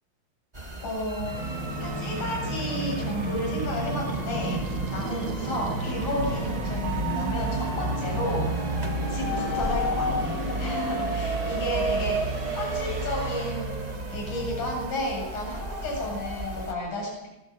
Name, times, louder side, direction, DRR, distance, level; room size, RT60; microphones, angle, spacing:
sound 1, 0.5-16.7, right 1 dB, 15° right, 1.4 m, -33 dB
voice 1, 0.8-1.5 1.8-4.6 4.9-8.5 9.1-13.8 14.1-17.3, left 1 dB, 55° left, -1 dB, 9.5 m, -32 dB
Musical instrument, 1.2-14.9, right 1 dB, 35° right, 4.6 m, -33 dB
sound 2, 1.5-13.1, right 6 dB, 55° right, 3.0 m, -40 dB
24.5 x 20.0 x 8.2 m, 1.0 s
omnidirectional pair, 4.3 m